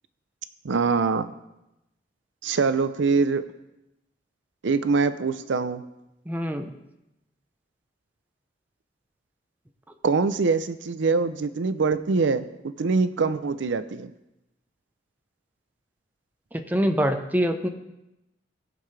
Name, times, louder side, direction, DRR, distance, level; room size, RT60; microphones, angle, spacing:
voice 1, 0.6-1.3 2.4-3.4 4.6-5.8 10.0-12.4 12.8-14.1, right 4 dB, 75° right, 12 dB, 0.5 m, -23 dB
voice 2, 6.3-6.7 16.5-17.7, equal, 10° right, 6 dB, 0.7 m, -24 dB
18.5 x 6.6 x 3.3 m, 0.91 s
head